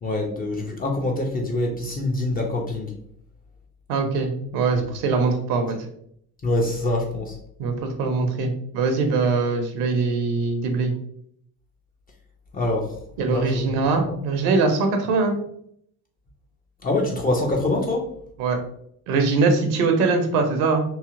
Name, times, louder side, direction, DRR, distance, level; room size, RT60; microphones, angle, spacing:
voice 1, 0.0-2.9 4.7-4.9 6.4-7.4 12.5-13.0 13.3-14.2 16.8-18.1, left 2 dB, 20° left, 0 dB, 0.5 m, -25 dB
voice 2, 3.9-5.8 7.6-10.9 13.2-15.4 18.4-18.6 19.1-20.8, right 4 dB, 50° right, 5 dB, 0.7 m, -22 dB
3.2 x 2.7 x 2.5 m, 0.68 s
figure-of-eight pair, 55°, 47 cm